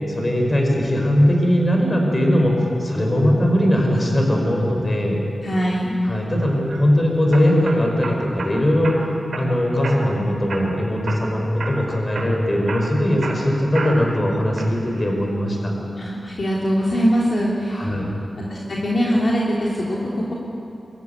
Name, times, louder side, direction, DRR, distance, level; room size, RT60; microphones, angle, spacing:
voice 1, 0.1-5.2 6.0-9.0 9.4-15.7 17.7-18.1, equal, 25° left, 1 dB, 5.2 m, -20 dB
voice 2, 5.4-6.0 16.0-17.9 18.4-20.3, equal, 50° left, -4 dB, 3.1 m, -22 dB
sound 1, 6.4-6.8 7.3-8.5 8.8-9.5 9.8-10.2 10.5-11.3 11.6-11.8 12.1-14.2 14.6-15.1, right 3 dB, 75° right, 3.9 m, -31 dB
23.5 x 14.5 x 9.6 m, 2.8 s
wide cardioid pair, 80°, 0 cm